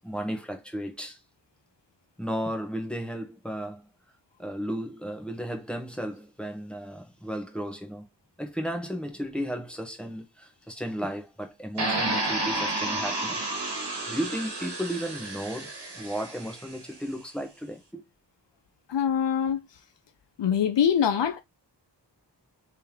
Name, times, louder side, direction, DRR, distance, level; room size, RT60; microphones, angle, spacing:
voice 1, 0.0-1.2 2.2-3.8 4.4-8.0 8.4-13.5 14.1-18.0, equal, ahead, 1.2 m, -34 dB
sound 1, 11.8-16.8, right 2 dB, 65° right, 1.5 m, -31 dB
voice 2, 18.9-19.6 20.4-21.4, left 8 dB, 85° left, 0.6 m, -24 dB
3.5 x 3.4 x 2.9 m
cardioid pair, 50°, 42 cm